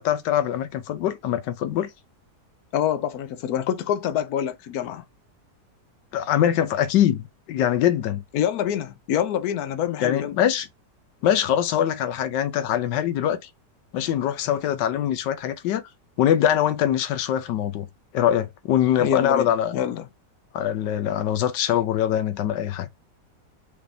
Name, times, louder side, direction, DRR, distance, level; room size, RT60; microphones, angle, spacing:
voice 1, 0.0-1.9 6.1-8.2 10.0-10.7 11.2-13.4 13.9-15.8 16.2-17.9 18.1-19.7 20.5-22.9, left 10 dB, 85° left, 1.4 m, -23 dB
voice 2, 2.7-5.0 8.3-10.4 19.0-20.1, left 10 dB, 70° left, 1.0 m, -26 dB
5.0 x 3.4 x 2.7 m
omnidirectional pair, 1.8 m